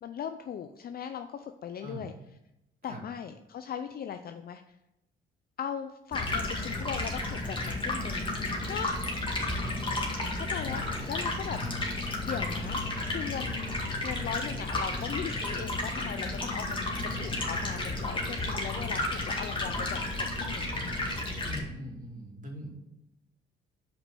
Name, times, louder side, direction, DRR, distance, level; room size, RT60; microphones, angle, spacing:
voice 1, 0.0-2.1 2.8-4.8 5.6-9.0 10.3-11.6 12.2-13.7 14.0-20.7, left 8 dB, 50° left, 8 dB, 0.5 m, -39 dB
Stream, 6.1-21.6, left 2 dB, 25° left, 2.0 m, -32 dB
voice 2, 9.2-9.9 10.6-10.9 11.6-11.8 19.6-19.8 21.4-22.7, equal, 40° right, -1 dB, 2.6 m, -42 dB
5.9 x 5.3 x 6.9 m, 0.90 s
cardioid pair, 90°, 20 cm